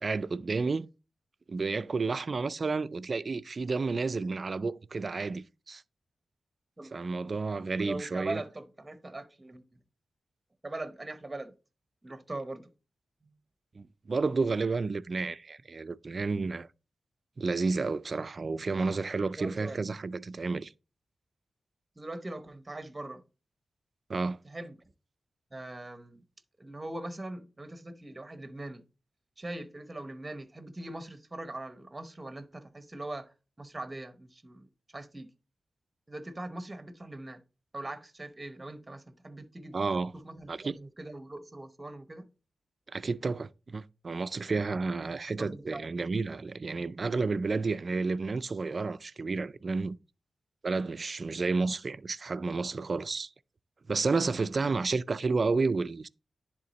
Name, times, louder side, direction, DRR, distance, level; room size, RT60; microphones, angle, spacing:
voice 1, 0.0-0.9 1.5-5.8 6.9-8.4 13.8-16.7 17.4-20.7 24.1-24.4 39.7-40.1 40.5-40.8 42.9-50.0 50.6-53.3 53.9-56.1, right 4 dB, 45° right, 0.3 m, -31 dB
voice 2, 7.7-9.6 10.6-11.5 12.0-12.7 19.4-19.8 22.0-23.2 24.4-24.8 25.5-26.2 26.6-28.8 29.4-34.7 34.9-35.3 36.1-37.4 37.7-39.8 40.1-42.3 45.4-45.9, right 2 dB, 20° right, 0.8 m, -41 dB
10.5 x 3.5 x 4.0 m
wide cardioid pair, 105°, 0 cm